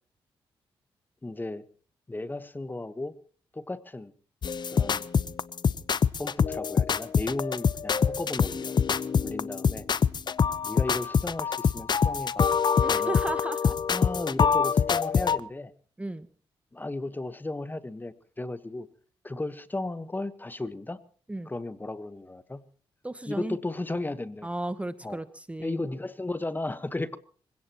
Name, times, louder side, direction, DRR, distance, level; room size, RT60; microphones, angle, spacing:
voice 1, 1.2-1.6 2.1-3.1 3.5-4.1 4.7-5.1 6.2-8.8 9.2-9.9 10.6-12.5 12.9-13.1 13.9-15.7 16.7-18.9 19.2-21.0 21.5-22.6 23.3-24.5 25.0-25.2 25.6-27.2, left 2 dB, 20° left, 13 dB, 1.2 m, -35 dB
sound 1, 4.4-15.4, left 6 dB, 50° left, 0.7 m, -25 dB
voice 2, 12.8-13.8 16.0-16.3 21.3-21.5 23.0-23.6 24.4-25.8, right 1 dB, 15° right, 13 dB, 1.0 m, -34 dB
25.5 x 17.0 x 3.0 m, 0.42 s
cardioid pair, 70°, 10 cm